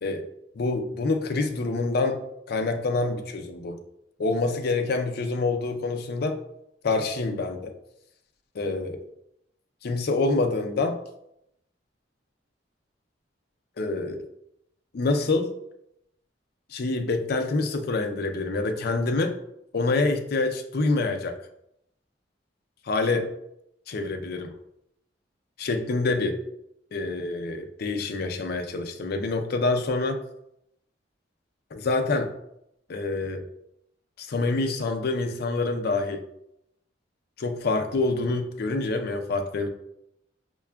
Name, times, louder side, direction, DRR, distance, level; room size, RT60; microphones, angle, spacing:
voice 1, 0.6-2.2 2.5-3.8 4.2-6.4 6.8-7.7 8.6-9.0 9.8-11.0 13.8-14.2 14.9-15.5 16.7-19.3 19.7-21.4 22.9-23.3 23.9-24.5 25.6-26.3 26.9-30.2 31.7-32.3 32.9-33.4 34.2-36.2 37.4-39.7, left 3 dB, 60° left, 5 dB, 0.4 m, -26 dB
5.6 x 2.2 x 2.2 m, 0.78 s
head